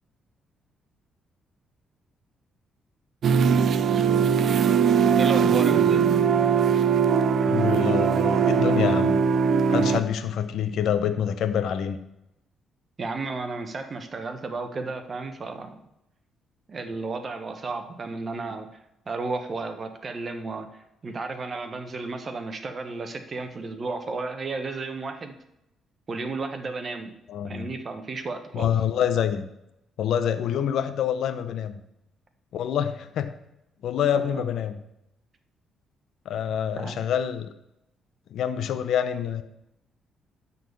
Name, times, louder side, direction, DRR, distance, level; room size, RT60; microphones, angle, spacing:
sound 1, 3.2-10.0, right 7 dB, 60° right, 0.6 m, -20 dB
voice 1, 5.2-6.0 13.0-15.8 16.7-18.7 19.1-20.7 21.0-25.3 26.1-27.1 27.4-28.7 34.3-34.4 36.8-37.0, right 3 dB, 40° right, 7 dB, 1.2 m, -33 dB
voice 2, 7.5-9.2 9.7-12.0 27.3-27.7 28.5-29.4 30.0-31.8 32.5-33.3 33.8-34.8 36.2-37.5 38.3-39.4, left 9 dB, 75° left, 10 dB, 0.7 m, -26 dB
12.0 x 4.2 x 6.9 m, 0.84 s
cardioid pair, 90°, 0 cm